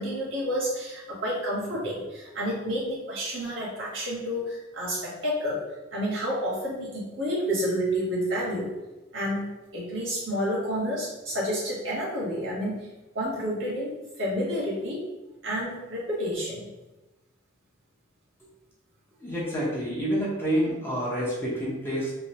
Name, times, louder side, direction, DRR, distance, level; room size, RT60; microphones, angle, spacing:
voice 1, 0.0-5.6 5.9-8.7 9.1-12.9 13.1-15.1 15.4-16.6, equal, 65° right, -6 dB, 1.4 m, -30 dB
voice 2, 19.2-22.1, equal, 10° left, -7 dB, 0.8 m, -28 dB
3.1 x 2.6 x 2.9 m, 1.1 s
head